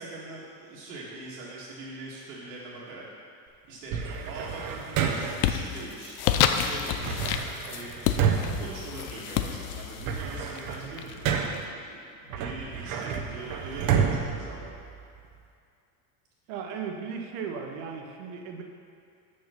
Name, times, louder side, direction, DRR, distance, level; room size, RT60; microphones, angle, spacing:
voice 1, 0.0-3.0 3.4-4.0 4.3-7.2 7.7-11.4 11.8-14.7, right 2 dB, 90° right, -10 dB, 2.1 m, -42 dB
sound 1, 3.9-5.5 7.0-9.5 9.8-11.8 12.3-15.3, right 7 dB, 50° right, 0.9 m, -30 dB
sound 2, 4.1-4.6 4.9-11.6, left 9 dB, 80° left, 0.7 m, -30 dB
voice 2, 16.5-18.6, right 6 dB, 65° right, 3 dB, 1.3 m, -36 dB
7.0 x 6.5 x 5.8 m, 2.4 s
supercardioid pair, 125°, 45 cm